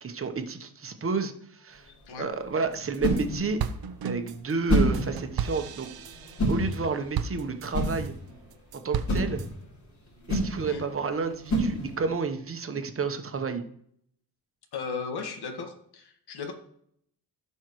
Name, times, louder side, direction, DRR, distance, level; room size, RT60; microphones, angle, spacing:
voice 1, 0.0-1.9 2.2-3.6 4.0-5.9 6.5-8.1 8.8-9.4 10.3-13.6, right 4 dB, 35° right, 7 dB, 1.1 m, -30 dB
sound 1, 1.7-12.2, equal, 45° left, 3.9 m, -30 dB
sound 2, 2.7-3.2 3.6-8.1 8.5-9.5, right 8 dB, 60° right, 0.7 m, -34 dB
voice 2, 14.7-16.5, left 5 dB, 70° left, 4 dB, 1.8 m, -36 dB
16.5 x 5.6 x 3.1 m, 0.68 s
cardioid pair, 115°, 41 cm